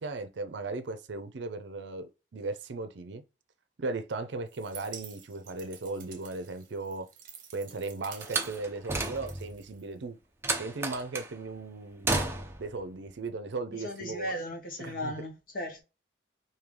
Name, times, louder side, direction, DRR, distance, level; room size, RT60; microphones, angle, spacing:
voice 1, 0.0-3.2 3.8-7.1 7.5-10.2 10.6-12.1 12.6-14.4 14.8-15.1, right 3 dB, 75° right, 0.5 m, -37 dB
sound 1, 4.5-10.2, right 7 dB, 45° right, 0.9 m, -50 dB
Slam, 8.2-9.6 10.4-11.3 12.0-12.7, right 2 dB, 15° right, 0.5 m, -32 dB
voice 2, 13.8-15.8, left 1 dB, 50° left, 1.1 m, -36 dB
3.2 x 2.7 x 3.6 m
head